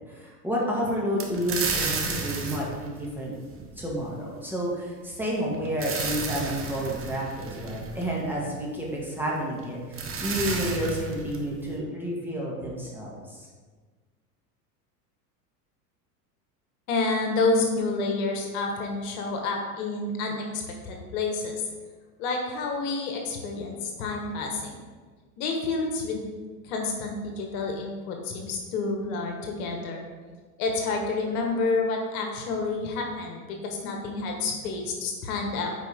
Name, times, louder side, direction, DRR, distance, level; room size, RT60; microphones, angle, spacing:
voice 1, 0.0-3.3 3.8-13.5, equal, 5° right, -5 dB, 2.0 m, -30 dB
sound 1, 1.2-3.9 5.4-8.5 9.6-9.7 9.9-11.8, right 4 dB, 25° right, 1.2 m, -32 dB
voice 2, 16.9-21.5 22.2-24.7 25.4-26.2 26.6-30.0 30.6-35.7, left 3 dB, 65° left, 2 dB, 1.5 m, -29 dB
9.1 x 4.8 x 3.6 m, 1.4 s
hypercardioid pair, 95°, 47 cm